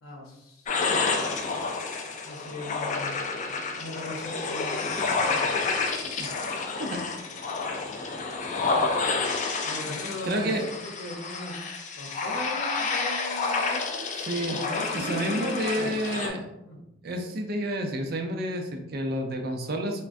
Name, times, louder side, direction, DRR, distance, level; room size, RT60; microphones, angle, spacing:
voice 1, 0.0-0.7 2.2-3.2 3.8-4.9 5.3-5.6 9.6-11.6 12.0-14.0 14.6-15.9 16.7-16.8, left 1 dB, 90° left, -2 dB, 0.7 m, -38 dB
sound 1, 0.7-16.3, left 4 dB, 35° left, 0.3 m, -29 dB
voice 2, 10.2-10.7 14.2-14.7 14.9-16.5 17.0-20.0, right 1 dB, 50° right, 3 dB, 0.4 m, -30 dB
3.4 x 2.1 x 2.5 m, 0.89 s
head